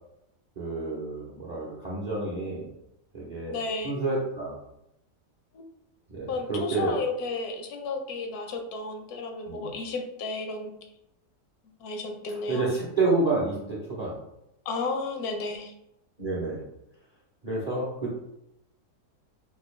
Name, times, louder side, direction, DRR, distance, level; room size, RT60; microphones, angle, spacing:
voice 1, 0.6-2.7 3.1-3.6 3.8-4.6 6.1-6.9 9.5-9.7 12.5-14.2 16.2-16.6 17.4-18.1, right 3 dB, 45° right, -5 dB, 0.5 m, -29 dB
voice 2, 3.5-4.0 5.5-5.7 6.3-10.7 11.8-12.7 14.7-15.7, left 3 dB, 75° left, 4 dB, 1.1 m, -33 dB
3.7 x 2.3 x 3.1 m, 0.83 s
omnidirectional pair, 1.7 m